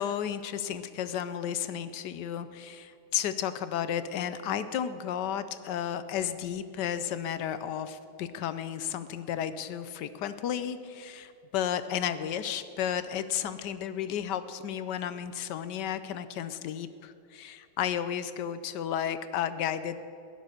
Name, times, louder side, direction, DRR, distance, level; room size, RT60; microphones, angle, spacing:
voice 1, 0.0-20.0, left 9 dB, 70° left, 12 dB, 1.2 m, -33 dB
16.5 x 11.5 x 6.6 m, 2.5 s
omnidirectional pair, 2.1 m